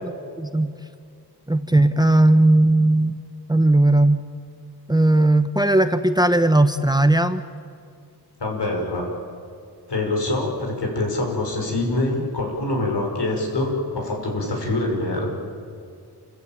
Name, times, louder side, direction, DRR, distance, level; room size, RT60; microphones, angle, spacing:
voice 1, 0.4-0.7 1.5-3.1 3.5-4.2 4.9-7.4, right 1 dB, 10° right, 10 dB, 0.9 m, -17 dB
voice 2, 8.4-9.1 9.9-15.3, left 2 dB, 80° left, 0 dB, 5.9 m, -25 dB
29.0 x 14.5 x 9.0 m, 2.3 s
wide cardioid pair, 100°, 40 cm